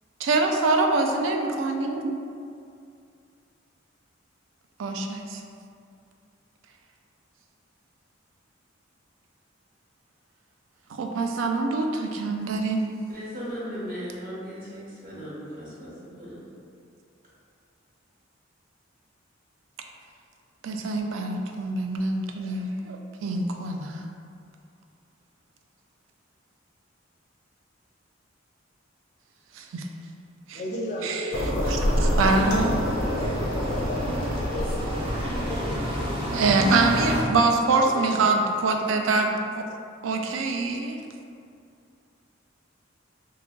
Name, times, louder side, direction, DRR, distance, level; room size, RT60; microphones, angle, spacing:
voice 1, 0.2-2.1 4.8-5.4 10.9-12.8 20.6-24.0 29.6-29.9 30.5-30.6 31.0-31.2 31.7-32.8 35.9-36.0 36.3-39.6 40.0-41.0, right 3 dB, 80° right, 3 dB, 0.4 m, -25 dB
voice 2, 13.1-16.4, equal, 50° right, -9 dB, 0.8 m, -37 dB
voice 3, 30.5-31.4 32.0-34.4 36.8-38.5, equal, 35° left, -4 dB, 0.4 m, -36 dB
sound 1, 31.3-36.6, equal, 85° left, 0.5 m, -27 dB
sound 2, 31.7-37.2, equal, 30° right, 0.5 m, -30 dB
2.9 x 2.4 x 3.6 m, 2.4 s
head